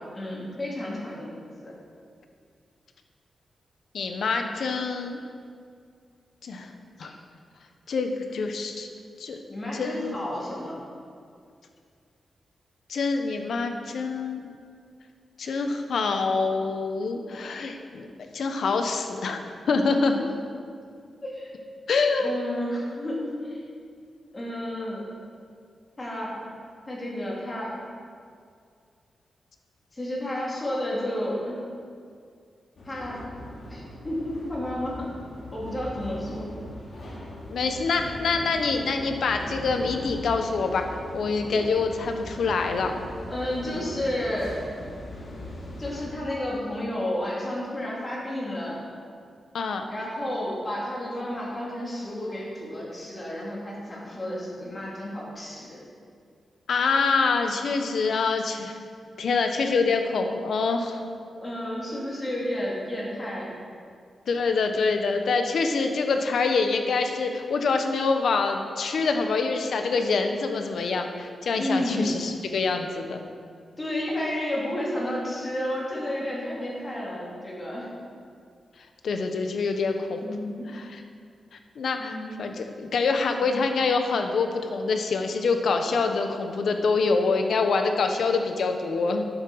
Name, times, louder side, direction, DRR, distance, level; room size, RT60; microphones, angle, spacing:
voice 1, 0.1-1.7 9.5-10.8 19.7-20.0 21.2-21.5 22.1-23.6 24.3-25.0 26.0-26.3 26.9-27.7 29.9-31.6 32.8-33.2 33.7-35.1 35.5-36.5 43.3-44.6 45.8-48.8 49.9-55.8 61.3-63.5 71.6-72.2 73.8-77.9 80.2-80.7 82.0-82.3 83.4-83.6, left 1 dB, 20° left, -5 dB, 3.2 m, -31 dB
voice 2, 3.9-5.2 6.4-6.7 7.0-7.1 7.9-8.9 9.2-9.4 9.7-10.2 12.9-14.4 15.4-18.1 18.3-20.1 21.9-22.3 37.5-42.9 49.5-49.8 56.7-58.8 59.2-61.0 64.3-73.2 79.0-80.2 80.7-81.0 81.8-89.3, left 4 dB, 70° left, 5 dB, 1.1 m, -25 dB
sound 1, 32.8-46.1, equal, 55° left, 2.7 m, -39 dB
10.5 x 8.1 x 6.4 m, 2.3 s
wide cardioid pair, 145°, 0 cm